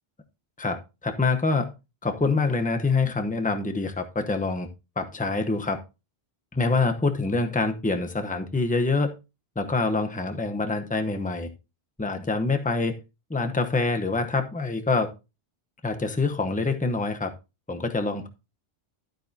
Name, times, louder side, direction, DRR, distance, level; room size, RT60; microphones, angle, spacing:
voice 1, 0.6-1.7 2.0-4.7 5.0-5.8 6.5-9.1 9.6-11.5 12.0-13.0 13.3-15.1 15.8-17.3 17.7-18.3, left 3 dB, 10° left, 7 dB, 0.8 m, -25 dB
12.0 x 8.7 x 2.8 m, 0.27 s
omnidirectional pair, 1.1 m